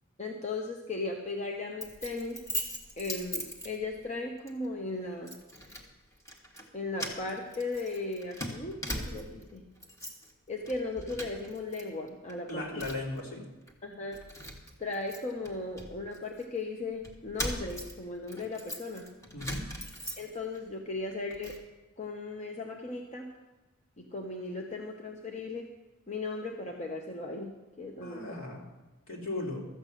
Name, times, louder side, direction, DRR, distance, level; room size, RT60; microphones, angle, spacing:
voice 1, 0.2-2.4 3.0-5.4 6.7-9.6 10.5-12.6 13.8-14.2 14.8-19.1 20.2-21.5 22.0-23.3 24.0-25.7 26.1-28.3, left 3 dB, 35° left, 1 dB, 1.0 m, -37 dB
Keys jangling, 1.8-4.1 4.5-4.7 5.3-5.9 6.2-6.7 6.9-9.4 9.8-10.3 10.6-11.8 12.1-13.2 13.7-13.8 14.1-16.5 17.0-20.6 21.0-21.6, equal, 15° left, 1.5 m, -40 dB
voice 2, 12.5-13.4 19.3-19.7 28.0-28.6 29.1-29.6, left 2 dB, 65° left, -3 dB, 3.4 m, -36 dB
13.5 x 8.1 x 6.6 m, 1.1 s
head